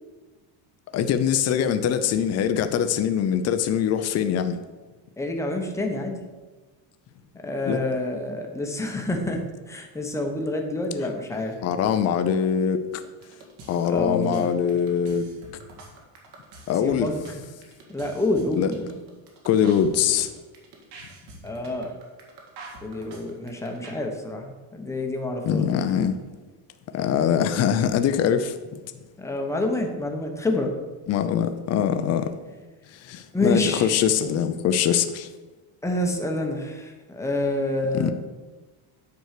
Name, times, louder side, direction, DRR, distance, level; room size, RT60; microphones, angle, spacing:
voice 1, 0.9-4.6 7.7-7.8 11.6-12.8 13.7-15.3 16.7-17.1 18.6-18.7 19.4-20.3 25.4-26.2 26.9-28.6 31.1-32.3 32.9-35.3 37.9-38.1, left 8 dB, 35° left, 0.5 m, -23 dB
voice 2, 5.2-6.2 7.4-11.6 13.9-14.5 16.8-17.2 17.9-18.9 21.4-21.9 22.8-25.6 29.2-30.7 33.3-34.0 35.8-38.1, left 2 dB, 5° left, 0.8 m, -28 dB
sound 1, 12.9-23.9, right 3 dB, 60° right, 2.0 m, -45 dB
9.4 x 4.6 x 6.5 m
cardioid pair, 170°, 46 cm